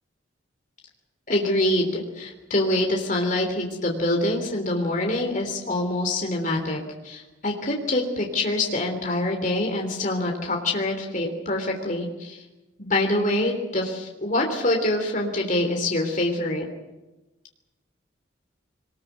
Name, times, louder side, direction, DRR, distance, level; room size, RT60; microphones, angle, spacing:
voice 1, 1.3-12.4 12.8-16.6, left 1 dB, 40° left, 2 dB, 3.4 m, -25 dB
23.0 x 21.0 x 8.2 m, 1.1 s
head